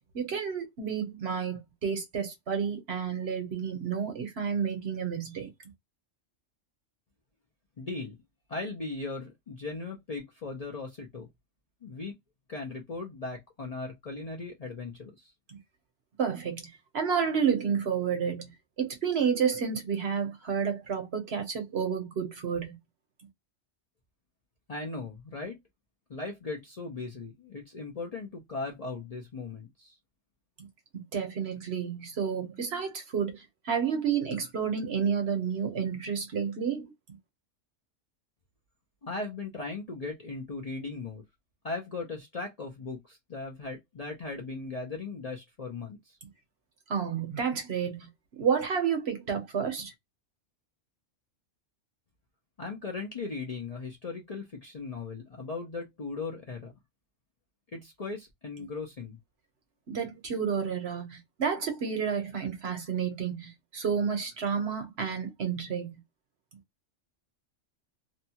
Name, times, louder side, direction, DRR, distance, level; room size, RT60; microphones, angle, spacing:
voice 1, 0.1-5.5 16.2-16.7 16.9-18.5 18.8-22.8 30.9-36.9 46.9-48.1 48.4-49.9 59.9-66.0, right 7 dB, 60° right, 1.0 m, -30 dB
voice 2, 7.8-8.2 8.5-11.3 11.8-12.2 12.5-15.3 24.7-25.6 26.1-30.0 39.0-41.2 41.6-46.2 52.6-56.7 57.7-59.2, left 3 dB, 45° left, 0.5 m, -38 dB
2.7 x 2.3 x 2.7 m
omnidirectional pair, 1.3 m